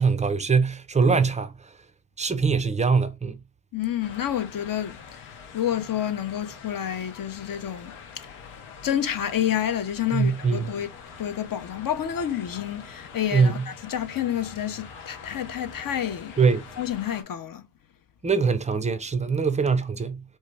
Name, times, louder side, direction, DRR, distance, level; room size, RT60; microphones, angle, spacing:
voice 1, 0.0-1.5 2.2-3.4 10.1-10.6 13.3-13.6 16.4-16.6 18.2-20.2, right 5 dB, 15° right, 0.3 m, -22 dB
voice 2, 3.7-8.3 8.8-10.9 11.2-16.3 16.8-17.6, left 10 dB, 45° left, 0.5 m, -29 dB
sound 1, 4.0-17.2, left 6 dB, 80° left, 0.8 m, -44 dB
2.8 x 2.1 x 3.2 m
supercardioid pair, 55°, 48 cm